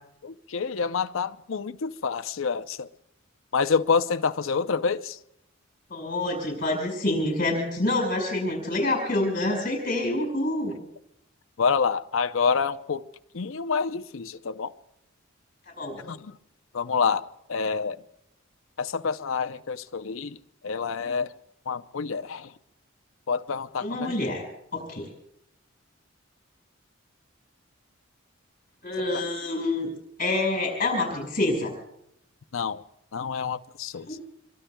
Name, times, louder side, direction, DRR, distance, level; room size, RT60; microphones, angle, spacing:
voice 1, 0.2-2.9 3.5-5.2 11.6-13.0 13.3-14.7 16.0-16.4 16.7-18.0 18.8-20.4 20.6-21.3 21.7-22.5 23.3-24.2 32.5-32.8 33.1-34.2, left 5 dB, 70° left, 0.6 m, -27 dB
voice 2, 5.9-10.7 15.8-16.0 23.8-24.4 24.7-25.1 28.8-29.9 30.2-31.7 34.1-34.2, left 2 dB, 40° left, 5.1 m, -27 dB
27.0 x 23.0 x 2.3 m
head